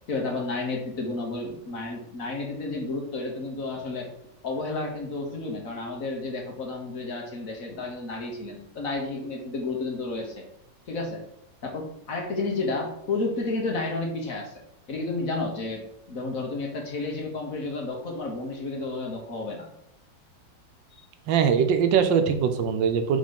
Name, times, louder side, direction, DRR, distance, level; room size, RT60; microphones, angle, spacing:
voice 1, 0.1-4.1 4.4-10.4 10.9-11.2 11.6-14.6 14.9-19.7, left 3 dB, 50° left, 1 dB, 1.5 m, -31 dB
voice 2, 21.3-23.2, right 7 dB, 85° right, 8 dB, 1.4 m, -22 dB
5.3 x 4.0 x 5.2 m, 0.78 s
omnidirectional pair, 2.0 m